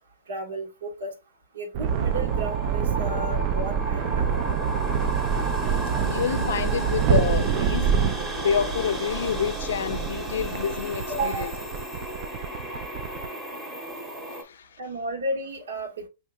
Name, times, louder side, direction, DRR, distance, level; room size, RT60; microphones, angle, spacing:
voice 1, 0.3-1.1 1.5-4.6 11.1-11.5 14.8-16.1, right 2 dB, 90° right, 1.3 m, -33 dB
sound 1, 1.7-13.3, right 7 dB, 40° right, 0.3 m, -26 dB
sound 2, 1.9-14.4, equal, 15° right, 0.9 m, -34 dB
voice 2, 6.0-8.0 8.4-11.5 14.3-14.8, left 7 dB, 80° left, 0.4 m, -28 dB
5.6 x 2.8 x 2.3 m
hypercardioid pair, 155°, 0 cm